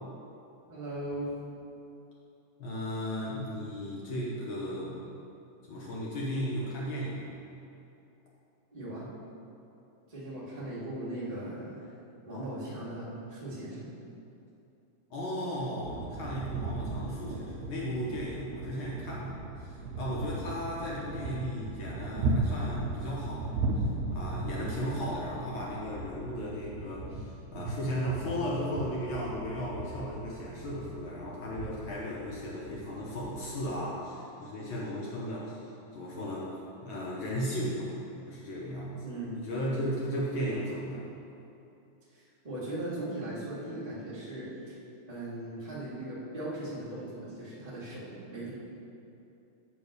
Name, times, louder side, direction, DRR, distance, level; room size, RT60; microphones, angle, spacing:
voice 1, 0.7-1.3 8.7-9.1 10.1-11.9 12.2-13.9 21.1-21.3 39.0-39.4 40.4-40.6 42.1-44.7 45.1-48.5, right 1 dB, 45° right, -10 dB, 0.5 m, -38 dB
voice 2, 2.6-5.1 5.7-7.4 15.1-23.7 24.1-35.6 35.9-36.5 36.8-38.0 38.3-39.0 39.4-41.1, equal, 80° left, -5 dB, 1.1 m, -35 dB
sound 1, 15.8-33.8, right 2 dB, 80° right, 1.8 m, -37 dB
8.9 x 3.5 x 6.6 m, 2.8 s
omnidirectional pair, 3.7 m